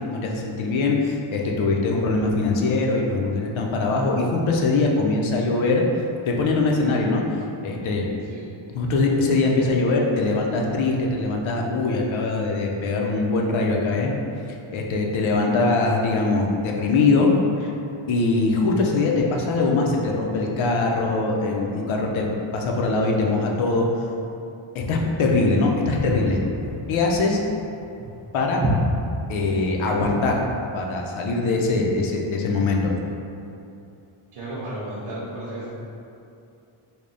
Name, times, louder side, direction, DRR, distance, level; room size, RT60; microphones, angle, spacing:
voice 1, 0.0-5.8 6.3-8.1 8.7-14.1 14.5-17.3 17.6-17.7 18.1-22.3 22.5-23.9 24.7-26.4 26.9-27.4 28.3-28.6 29.3-30.4 30.7-32.9, left 3 dB, 70° left, 0 dB, 0.6 m, -22 dB
Walk footsteps, 25.8-30.3, right 1 dB, 25° right, 0.5 m, -28 dB
voice 2, 34.3-35.7, right 1 dB, 85° right, -8 dB, 0.8 m, -33 dB
3.4 x 2.2 x 3.8 m, 2.7 s
cardioid pair, 135°, 50 cm